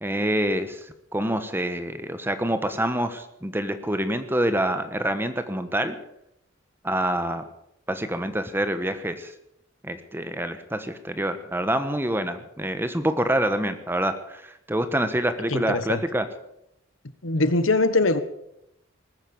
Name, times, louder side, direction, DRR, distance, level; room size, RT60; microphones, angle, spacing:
voice 1, 0.0-6.0 6.8-7.4 7.9-9.3 9.8-16.3, right 1 dB, 10° right, 10 dB, 1.2 m, -26 dB
voice 2, 15.5-16.0 17.2-18.2, left 2 dB, 80° left, 12 dB, 1.3 m, -22 dB
20.0 x 9.9 x 7.2 m, 0.81 s
head